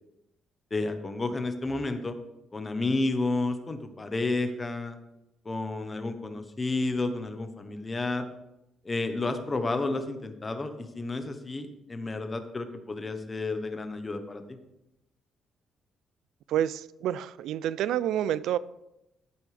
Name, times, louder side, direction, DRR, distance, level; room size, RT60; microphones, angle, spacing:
voice 1, 0.7-2.2 2.5-5.0 5.4-8.3 8.8-14.6, left 2 dB, 20° left, 8 dB, 0.9 m, -31 dB
voice 2, 16.5-18.6, right 11 dB, 85° right, 18 dB, 0.3 m, -28 dB
12.0 x 8.5 x 3.4 m, 0.88 s
cardioid pair, 145°, 0 cm